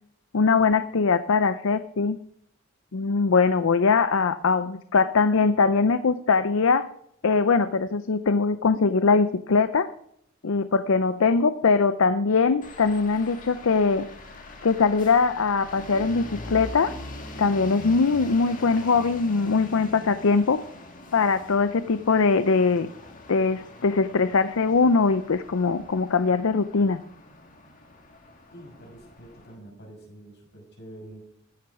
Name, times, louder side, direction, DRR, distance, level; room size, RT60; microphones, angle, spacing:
voice 1, 0.3-2.2 2.9-6.9 7.2-9.9 10.4-14.1 14.6-16.9 17.4-20.6 21.1-22.9 23.3-27.0, left 4 dB, 75° left, 12 dB, 0.6 m, -22 dB
sound 1, 12.6-29.6, left 2 dB, 40° left, 1.8 m, -43 dB
voice 2, 28.5-31.3, right 1 dB, 55° left, 0 dB, 6.0 m, -46 dB
14.5 x 9.4 x 4.8 m, 0.72 s
head